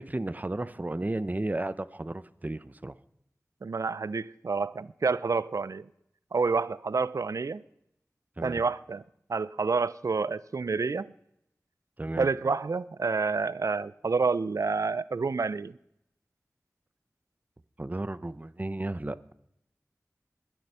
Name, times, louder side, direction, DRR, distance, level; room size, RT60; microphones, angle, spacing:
voice 1, 0.0-2.9 8.4-8.6 12.0-12.3 17.8-19.3, right 2 dB, 30° right, 0.6 m, -33 dB
voice 2, 3.6-5.9 6.3-7.6 8.4-9.0 9.3-11.1 12.2-15.7, right 4 dB, 70° right, 0.4 m, -28 dB
21.0 x 7.6 x 5.5 m
wide cardioid pair, 55°, 6 cm